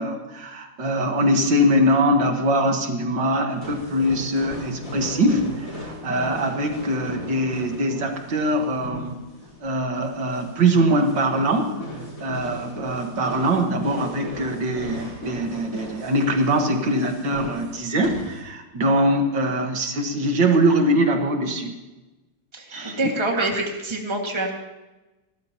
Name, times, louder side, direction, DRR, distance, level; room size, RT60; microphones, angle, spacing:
voice 1, 0.0-9.2 9.6-11.8 12.2-21.7 22.7-23.7, right 1 dB, 80° right, 4 dB, 2.3 m, -22 dB
sound 1, 3.5-18.4, equal, 45° left, 7.3 m, -37 dB
voice 2, 22.5-24.5, right 2 dB, 15° right, 1 dB, 1.9 m, -26 dB
27.5 x 13.0 x 3.0 m, 1.1 s
omnidirectional pair, 2.0 m